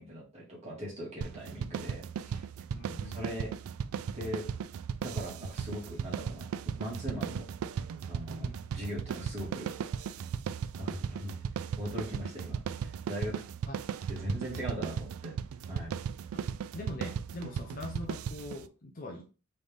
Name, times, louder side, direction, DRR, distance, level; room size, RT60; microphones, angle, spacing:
voice 1, 0.0-2.4 3.0-3.5 4.1-4.5 5.0-7.5 8.1-8.5 8.7-9.7 10.8-11.3 11.8-13.3 14.1-15.3 15.7-15.9, equal, 30° right, -4 dB, 1.9 m, -40 dB
sound 1, 1.2-18.7, right 7 dB, 70° right, 0.3 m, -37 dB
voice 2, 2.7-3.2 7.2-7.3 8.4-8.6 13.7-13.8 14.5-14.6 16.3-16.4 16.7-19.2, left 2 dB, 40° left, 1 dB, 0.6 m, -42 dB
4.0 x 3.2 x 3.4 m, 0.33 s
head